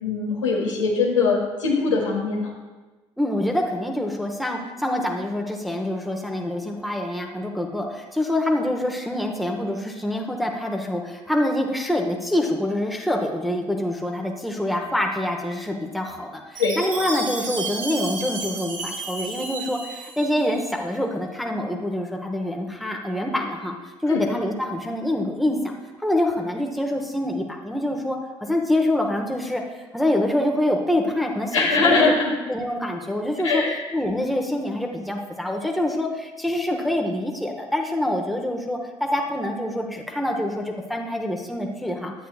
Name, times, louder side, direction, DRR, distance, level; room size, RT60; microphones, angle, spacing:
voice 1, 0.0-2.5 16.6-16.8 24.1-24.2 31.5-32.3 33.4-33.8, left 4 dB, 85° left, -2 dB, 1.5 m, -21 dB
voice 2, 3.2-23.8 24.0-25.7 26.0-29.6 29.9-32.1 32.5-33.6 33.9-42.1, left 1 dB, ahead, 1 dB, 1.1 m, -26 dB
Chime, 16.6-20.7, right 3 dB, 85° right, 1.2 m, -32 dB
9.3 x 8.9 x 2.4 m, 1.2 s
figure-of-eight pair, 50°, 15 cm